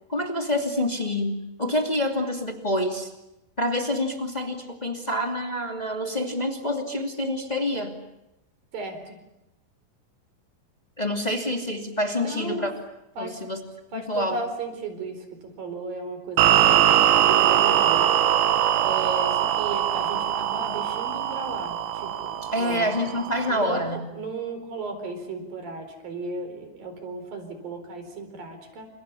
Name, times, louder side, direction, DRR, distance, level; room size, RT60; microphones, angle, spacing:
voice 1, 0.1-3.1 3.6-7.9 11.0-12.7 13.2-13.6 13.9-14.4 22.5-24.0, left 1 dB, 15° left, 3 dB, 1.6 m, -27 dB
voice 2, 8.7-9.2 12.2-12.7 13.2-13.4 13.9-18.2 18.8-22.9 23.5-23.8 24.2-28.9, right 3 dB, 55° right, 7 dB, 5.9 m, -35 dB
sound 1, 16.4-23.6, right 11 dB, 90° right, 3.6 m, -22 dB
30.0 x 28.0 x 7.1 m, 0.91 s
omnidirectional pair, 5.0 m